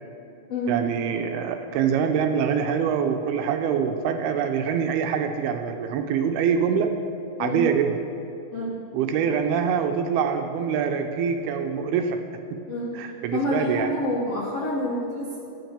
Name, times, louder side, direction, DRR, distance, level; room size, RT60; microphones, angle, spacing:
voice 1, 0.7-6.9 7.4-7.9 8.9-12.2 12.9-13.9, right 7 dB, 80° right, 5 dB, 2.4 m, -24 dB
voice 2, 13.3-15.4, left 1 dB, 65° left, -5 dB, 1.5 m, -27 dB
13.0 x 6.0 x 7.3 m, 2.8 s
omnidirectional pair, 4.8 m